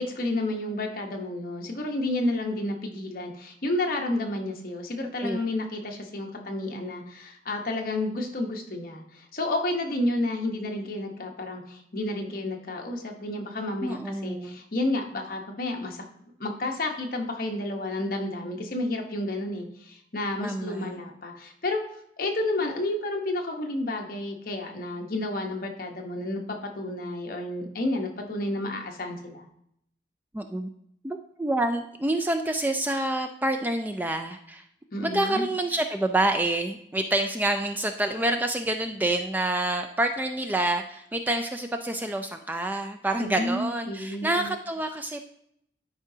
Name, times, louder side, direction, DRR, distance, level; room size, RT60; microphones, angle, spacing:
voice 1, 0.0-16.0 16.4-21.8 22.2-26.4 26.8-29.5 34.9-35.4 43.2-44.5, left 1 dB, 50° left, 2 dB, 1.0 m, -31 dB
voice 2, 13.8-14.6 20.4-21.0 30.3-30.7 31.0-34.6 35.0-45.2, right 1 dB, 10° right, 6 dB, 0.3 m, -27 dB
12.0 x 4.9 x 2.7 m, 0.71 s
head